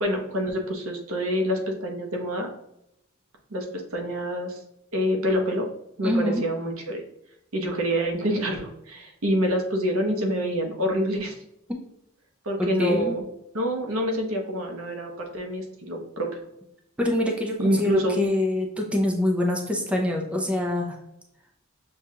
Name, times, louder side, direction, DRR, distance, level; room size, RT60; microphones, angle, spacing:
voice 1, 0.0-2.5 3.5-3.7 3.9-4.6 4.9-5.7 6.0-7.0 7.5-11.4 12.4-13.2 13.5-16.4 17.6-18.3, equal, 80° right, 2 dB, 0.9 m, -26 dB
voice 2, 6.0-6.4 12.6-13.1 17.0-21.0, left 1 dB, 5° right, 0 dB, 0.5 m, -25 dB
6.6 x 2.4 x 2.8 m, 0.80 s
head